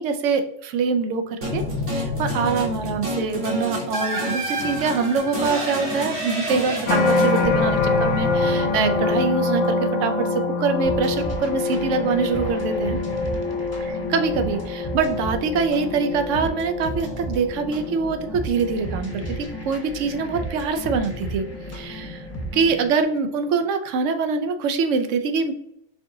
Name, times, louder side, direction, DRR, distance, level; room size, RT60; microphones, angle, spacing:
voice 1, 0.0-1.6 1.9-13.0 13.8-22.3 22.5-25.5, right 5 dB, 85° right, 8 dB, 0.9 m, -24 dB
sound 1, 1.4-9.6, left 1 dB, 70° right, 1.6 m, -28 dB
sound 2, 6.9-22.1 22.6-23.0, left 3 dB, 80° left, 0.9 m, -26 dB
sound 3, 10.8-22.9, right 1 dB, 15° left, 0.8 m, -34 dB
4.7 x 2.6 x 3.7 m, 0.77 s
omnidirectional pair, 1.3 m